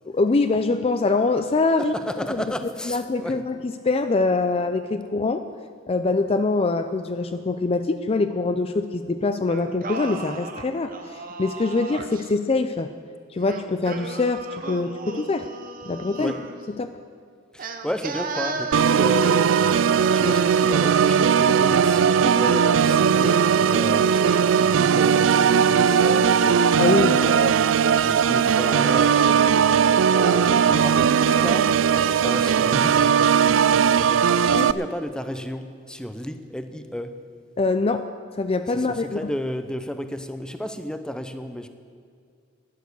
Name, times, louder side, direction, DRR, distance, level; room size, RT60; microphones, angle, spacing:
voice 1, 0.1-1.9 2.3-2.4 2.9-5.4 5.9-12.9 13.3-15.5 15.8-16.3 16.8-16.9 26.8-27.2 34.4-34.7 37.6-38.1 38.4-39.3, left 3 dB, 30° left, 9 dB, 0.4 m, -24 dB
voice 2, 1.8-3.4 16.2-16.5 17.5-27.6 27.9-33.2 34.5-37.2 38.7-41.7, equal, 5° left, 8 dB, 0.7 m, -33 dB
Singing, 9.5-12.3 13.4-16.6 17.6-20.7, right 4 dB, 50° right, 1.0 m, -35 dB
Organ, 18.7-34.7, right 7 dB, 85° right, 0.4 m, -18 dB
11.5 x 10.5 x 8.1 m, 2.2 s
head